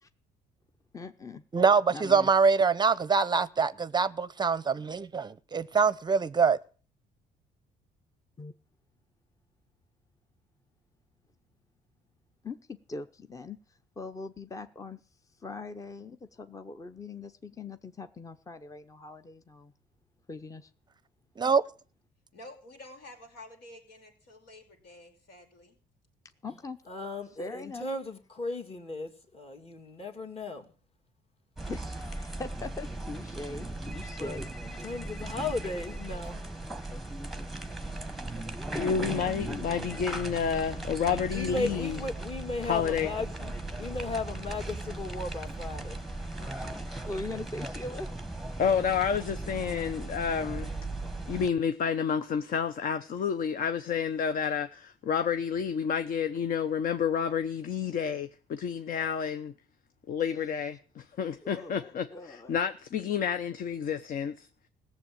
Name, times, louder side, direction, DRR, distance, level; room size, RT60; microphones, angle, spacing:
voice 1, 0.9-1.4 1.9-2.3 8.4-8.5 12.4-15.0 15.3-19.7 20.3-20.7 26.4-26.8 27.4-27.9 31.7-34.5 38.5-39.0 46.4-48.1 61.4-62.6, left 3 dB, 20° left, 0.8 m, -41 dB
voice 2, 1.5-6.6 21.4-21.6, right 5 dB, 25° right, 0.6 m, -24 dB
voice 3, 22.3-25.8, left 1 dB, 85° left, 5.3 m, -50 dB
voice 4, 26.9-30.7 34.2-34.4 34.8-36.4 38.8-39.1 41.0-46.0, left 3 dB, 35° left, 2.5 m, -36 dB
sound 1, 31.6-51.5, right 2 dB, ahead, 1.2 m, -38 dB
voice 5, 38.8-42.0 42.6-43.1 48.6-50.7 51.3-59.5 60.1-64.5, left 7 dB, 55° left, 0.9 m, -30 dB
17.0 x 7.4 x 8.8 m
cardioid pair, 110°, 17 cm